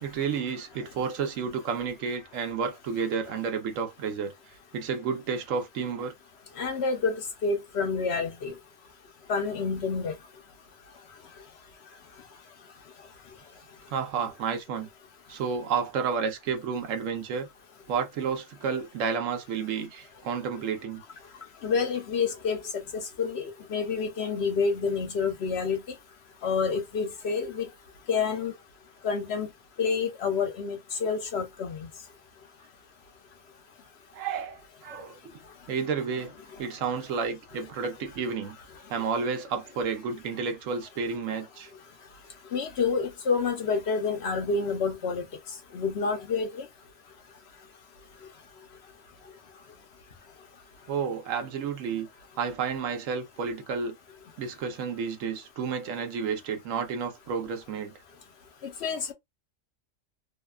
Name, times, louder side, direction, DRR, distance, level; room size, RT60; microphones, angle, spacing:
voice 1, 0.0-4.3 4.7-6.1 13.9-14.9 15.3-17.5 17.9-21.0 34.1-35.4 35.7-38.6 38.9-41.7 50.9-52.1 52.4-54.0 54.4-58.0, right 6 dB, 75° right, 1.0 m, -31 dB
voice 2, 6.6-7.2 7.4-8.5 9.3-10.1 21.6-25.8 26.4-27.7 28.1-28.5 29.0-29.5 29.8-31.9 42.5-45.2 45.7-46.7 58.8-59.1, left 5 dB, 60° left, 0.8 m, -28 dB
2.8 x 2.2 x 2.2 m
omnidirectional pair, 1.4 m